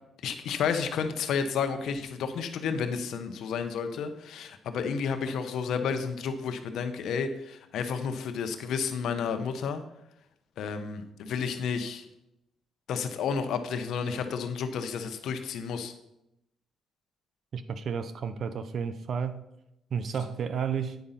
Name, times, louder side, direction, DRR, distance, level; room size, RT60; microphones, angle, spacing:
voice 1, 0.2-9.8 10.6-12.0 12.9-15.9, left 6 dB, 75° left, 0.9 m, -31 dB
voice 2, 17.5-19.5 19.9-21.0, right 6 dB, 55° right, 0.7 m, -32 dB
9.3 x 5.0 x 5.7 m
cardioid pair, 90°, 0 cm